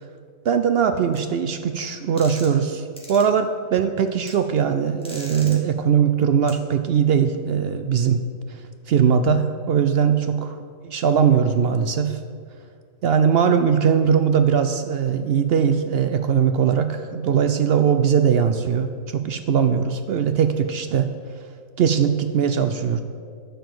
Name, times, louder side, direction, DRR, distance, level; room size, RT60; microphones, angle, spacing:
voice 1, 0.5-8.2 8.5-8.6 8.9-10.6 10.8-12.2 13.0-21.1 21.8-23.0, right 7 dB, 75° right, 9 dB, 0.5 m, -20 dB
sound 1, 1.1-1.2 2.2-2.6 3.0-3.2 4.3-4.4 5.0-5.6 6.5-6.6, equal, 5° left, 1.8 m, -39 dB
11.0 x 5.3 x 7.6 m, 2.1 s
omnidirectional pair, 1.6 m